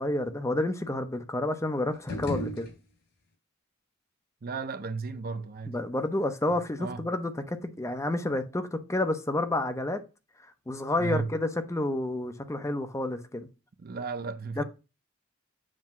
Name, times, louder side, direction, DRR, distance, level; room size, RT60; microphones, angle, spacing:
voice 1, 0.0-2.7 5.7-10.0 10.7-13.5 14.6-14.7, left 1 dB, 15° left, 0.6 m, -30 dB
sound 1, 1.9-3.3, left 1 dB, 55° left, 3.7 m, -37 dB
voice 2, 4.4-5.8 6.8-7.0 11.0-11.3 13.8-14.6, right 4 dB, 45° right, 0.5 m, -34 dB
7.5 x 2.8 x 5.8 m
head